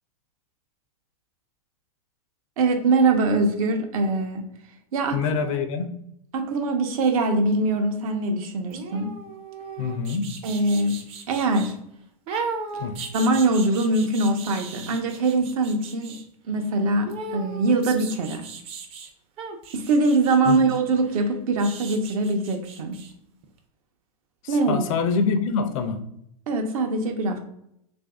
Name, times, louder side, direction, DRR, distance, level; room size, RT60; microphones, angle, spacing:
voice 1, 2.6-4.4 4.9-5.2 6.3-9.1 10.4-10.9 11.3-11.7 13.1-16.2 16.5-18.5 19.7-23.0 24.5-24.8 26.5-27.4, right 2 dB, 65° right, 0.7 m, -22 dB
voice 2, 5.1-5.9 9.8-10.3 12.8-13.0 20.5-20.6 24.4-26.0, left 5 dB, 60° left, 0.6 m, -25 dB
sound 1, 8.7-11.7 12.3-16.2 17.0-19.1 19.4-23.1 23.4-23.5, right 4 dB, 30° right, 0.5 m, -37 dB
2.9 x 2.6 x 3.4 m
hypercardioid pair, 130°, 19 cm